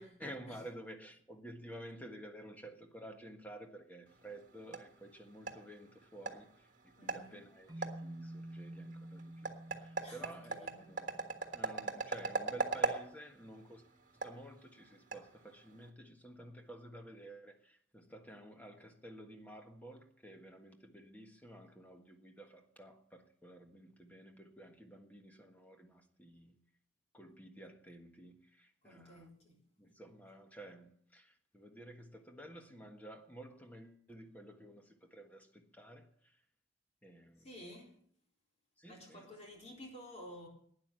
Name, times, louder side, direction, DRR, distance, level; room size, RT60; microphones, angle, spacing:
voice 1, 0.0-13.8 14.2-26.6 27.1-29.3 29.8-36.4 37.0-37.8 38.8-39.3, right 1 dB, 10° left, 1.5 m, -52 dB
sound 1, 4.1-15.9, right 3 dB, 45° right, 1.6 m, -42 dB
voice 2, 7.0-7.4 10.0-10.7 28.8-29.6 37.4-38.0 38.9-40.5, equal, 35° left, 4.0 m, -52 dB
sound 2, 7.7-12.0, right 1 dB, 20° right, 0.9 m, -50 dB
12.0 x 9.7 x 8.9 m
head